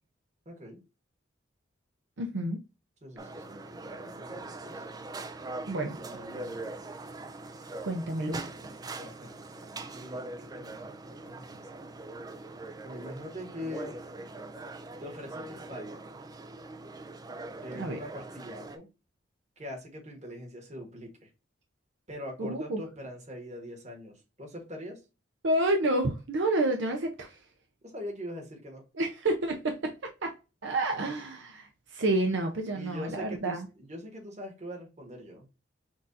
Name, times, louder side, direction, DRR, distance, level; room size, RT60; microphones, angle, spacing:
voice 1, 0.4-0.8 3.0-4.9 5.9-6.7 7.7-7.8 8.8-11.9 12.8-14.0 15.0-16.0 17.6-18.9 19.6-21.3 22.1-25.0 27.8-28.8 32.7-35.5, equal, 35° right, 1.5 m, -43 dB
voice 2, 2.2-2.6 5.7-6.0 7.8-8.5 17.7-18.0 22.4-22.8 25.4-27.4 29.0-30.0 30.2-30.3 30.6-33.6, right 1 dB, 70° right, 0.6 m, -29 dB
sound 1, 3.2-18.8, right 2 dB, 20° right, 0.3 m, -42 dB
6.1 x 2.5 x 2.7 m
head